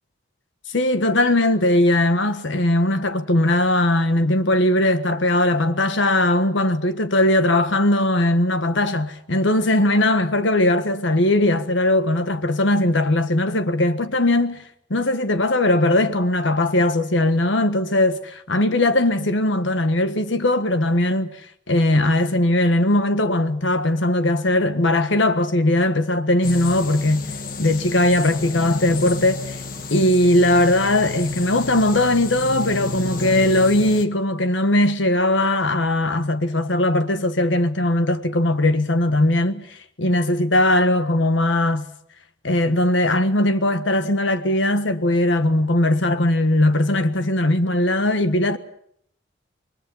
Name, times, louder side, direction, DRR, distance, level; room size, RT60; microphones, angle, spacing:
voice 1, 0.7-14.6 14.9-21.3 21.7-27.3 27.6-29.6 29.9-39.7 40.0-41.9 42.4-48.6, left 1 dB, 80° left, 1.5 m, -19 dB
sound 1, 26.4-34.1, left 3 dB, 45° left, 1.4 m, -31 dB
28.0 x 22.0 x 5.6 m
head